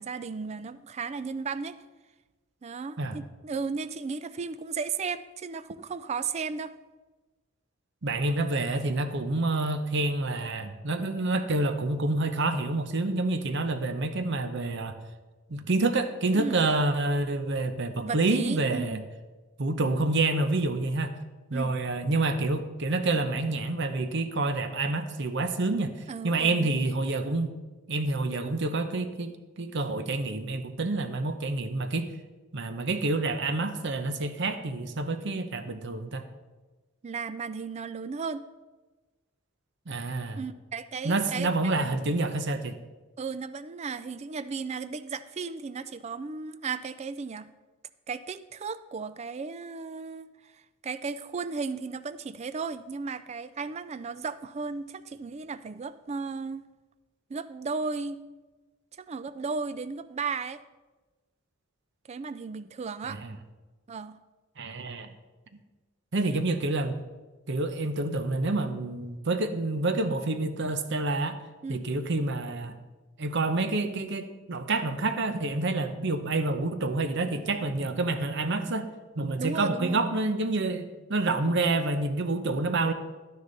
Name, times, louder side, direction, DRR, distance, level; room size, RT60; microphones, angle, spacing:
voice 1, 0.0-1.8 2.6-6.7 16.4-16.7 18.0-19.0 21.5-21.8 26.1-26.8 37.0-38.4 40.4-41.7 43.2-47.5 48.1-56.7 57.3-58.2 59.0-60.6 62.1-63.2 63.9-64.2 71.6-71.9 79.4-80.0 81.3-81.5, right 5 dB, 30° right, 13 dB, 0.3 m, -35 dB
voice 2, 8.0-15.0 15.5-19.0 19.6-21.1 21.5-26.0 26.2-27.5 27.9-32.1 32.5-36.3 39.9-40.4 41.0-42.7 63.0-63.4 64.6-65.1 66.1-67.0 67.5-71.4 71.7-72.7 73.2-78.9 79.2-82.9, right 2 dB, 55° right, 9 dB, 0.8 m, -28 dB
11.5 x 9.7 x 4.0 m, 1.2 s
head